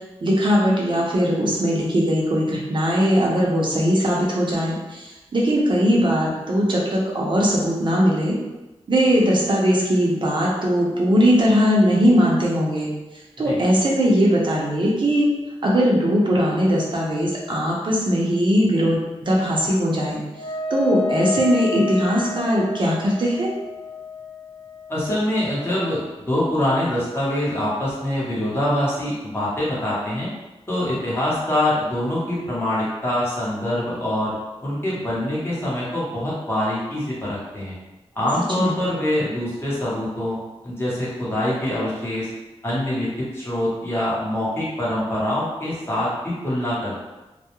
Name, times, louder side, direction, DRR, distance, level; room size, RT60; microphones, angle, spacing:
voice 1, 0.2-8.4 8.9-12.9 13.4-15.3 15.6-20.2 20.7-23.5 38.6-38.8, equal, 50° right, -3 dB, 0.6 m, -20 dB
Wind instrument woodwind instrument, 20.3-26.0, left 4 dB, 70° left, 0.4 m, -31 dB
voice 2, 24.9-30.3 30.7-34.3 34.6-37.7 38.1-40.4 40.6-42.3 42.6-47.0, left 1 dB, 20° left, -8 dB, 0.9 m, -24 dB
2.3 x 2.0 x 2.9 m, 1.1 s
wide cardioid pair, 120°, 11 cm